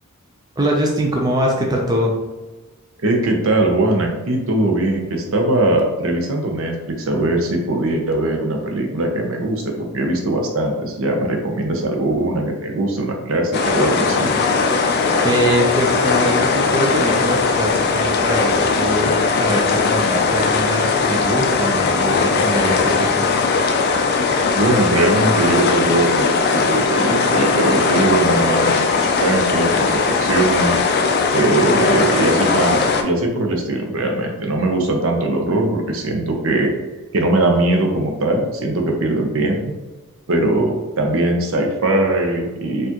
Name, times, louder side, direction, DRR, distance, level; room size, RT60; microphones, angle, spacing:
voice 1, 0.6-2.2 14.7-23.3, equal, 20° right, -1 dB, 0.4 m, -22 dB
voice 2, 3.0-14.3 24.5-30.8 31.3-36.7 37.1-39.6 40.3-42.9, right 2 dB, 65° right, 2 dB, 0.6 m, -20 dB
sound 1, 13.5-33.0, left 4 dB, 45° left, 0.3 m, -18 dB
4.3 x 2.4 x 2.9 m, 1.2 s
head